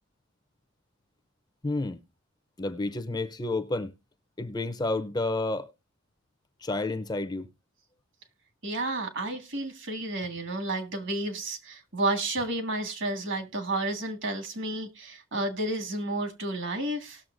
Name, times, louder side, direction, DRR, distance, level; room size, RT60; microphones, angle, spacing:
voice 1, 1.6-2.0 2.6-3.9 4.4-5.7 6.6-7.5, left 2 dB, 20° left, 0.6 m, -30 dB
voice 2, 8.6-17.2, right 2 dB, 60° right, 1.8 m, -31 dB
18.5 x 6.8 x 2.5 m
head